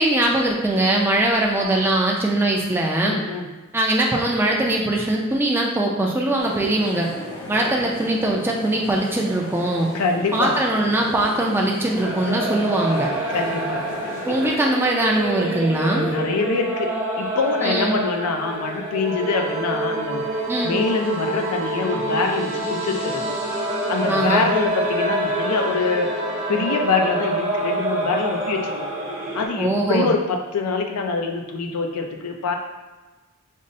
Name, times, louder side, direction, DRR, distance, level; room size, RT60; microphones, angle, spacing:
voice 1, 0.0-3.1 3.7-7.1 7.5-9.9 10.3-13.1 14.2-16.1 17.6-17.9 20.5-20.8 24.1-24.4 29.6-30.1, right 1 dB, 10° right, -1 dB, 0.3 m, -21 dB
voice 2, 3.0-3.5 9.9-10.6 12.2-12.4 13.3-13.8 14.2-14.4 15.9-20.3 20.6-23.2 23.9-26.1 26.5-28.9 29.3-32.6, left 4 dB, 90° left, 3 dB, 0.5 m, -24 dB
sound 1, 6.4-14.5, left 1 dB, 65° left, 1.1 m, -36 dB
sound 2, 11.9-29.5, right 1 dB, 30° right, 0.7 m, -28 dB
sound 3, 19.0-29.3, right 1 dB, 70° right, 0.8 m, -31 dB
5.2 x 2.0 x 2.6 m, 1.2 s
head